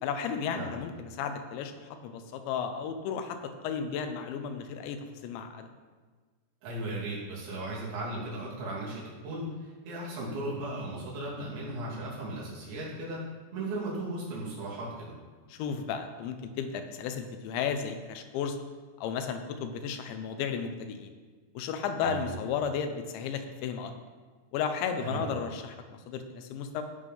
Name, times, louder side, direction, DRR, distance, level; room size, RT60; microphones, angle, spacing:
voice 1, 0.0-1.8 2.0-5.7 15.5-18.6 19.0-21.1 21.5-23.9 24.5-26.8, left 7 dB, 90° left, 7 dB, 3.2 m, -34 dB
voice 2, 6.6-13.2 13.5-15.2 22.0-22.3 25.0-25.4, right 2 dB, 85° right, -6 dB, 5.3 m, -36 dB
15.5 x 5.3 x 5.5 m, 1.4 s
omnidirectional pair, 5.1 m